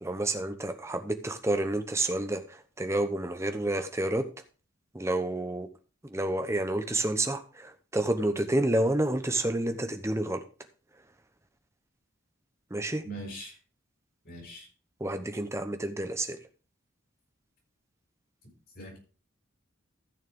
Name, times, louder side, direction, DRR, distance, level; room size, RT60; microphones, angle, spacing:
voice 1, 0.0-4.2 4.9-5.7 6.0-10.4 12.7-13.0 15.0-16.4, right 1 dB, 15° right, 7 dB, 0.9 m, -29 dB
voice 2, 13.0-13.6 14.2-14.7 18.7-19.0, right 1 dB, 50° left, 0 dB, 6.0 m, -41 dB
14.5 x 6.5 x 3.6 m, 0.36 s
head